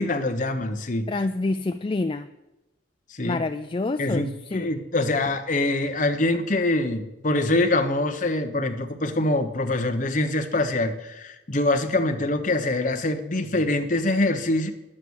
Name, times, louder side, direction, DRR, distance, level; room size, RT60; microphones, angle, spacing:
voice 1, 0.0-1.1 3.1-3.4 4.0-14.7, left 2 dB, 45° left, 7 dB, 1.0 m, -24 dB
voice 2, 1.1-2.3 3.2-4.2 4.5-4.7, left 2 dB, 30° left, 9 dB, 0.4 m, -27 dB
11.0 x 8.7 x 6.4 m, 0.99 s
head